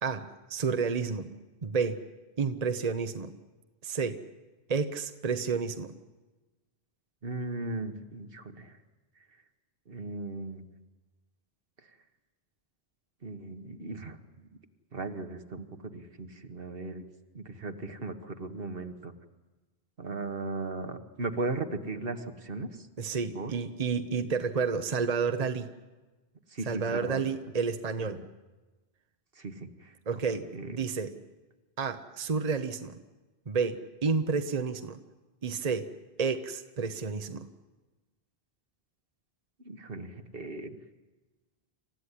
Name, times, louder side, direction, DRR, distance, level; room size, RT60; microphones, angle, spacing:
voice 1, 0.0-1.3 1.6-2.0 2.4-3.3 3.8-4.2 4.7-5.9 23.0-25.7 26.7-28.2 30.1-31.2 31.8-33.0 33.5-35.0 35.4-35.9 36.2-37.5, right 5 dB, 40° right, 8 dB, 1.0 m, -30 dB
voice 2, 7.2-8.7 9.9-10.6 13.2-14.2 14.9-15.7 15.9-17.0 17.3-19.1 20.0-22.7 23.3-23.5 26.5-27.2 29.4-29.9 30.5-30.7 39.6-40.7, right 3 dB, 65° right, 7 dB, 1.7 m, -37 dB
27.5 x 15.0 x 10.0 m, 1.2 s
omnidirectional pair, 1.0 m